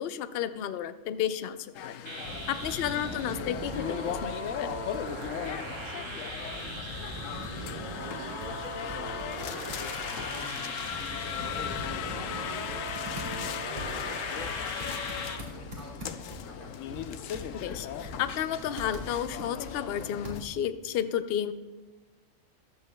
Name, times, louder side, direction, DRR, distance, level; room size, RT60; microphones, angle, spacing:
voice 1, 0.0-2.0 2.5-4.7 17.5-21.5, left 10 dB, 60° left, 12 dB, 0.7 m, -32 dB
sound 1, 1.7-20.4, left 9 dB, 90° left, 1.0 m, -37 dB
sound 2, 2.1-15.4, right 2 dB, 25° right, 0.7 m, -40 dB
Computer keyboard, 2.2-20.7, left 1 dB, 40° right, 2.0 m, -44 dB
voice 2, 2.6-3.0 5.7-16.8, left 1 dB, 10° left, -2 dB, 2.0 m, -49 dB
21.5 x 7.2 x 2.2 m, 1.3 s
omnidirectional pair, 1.3 m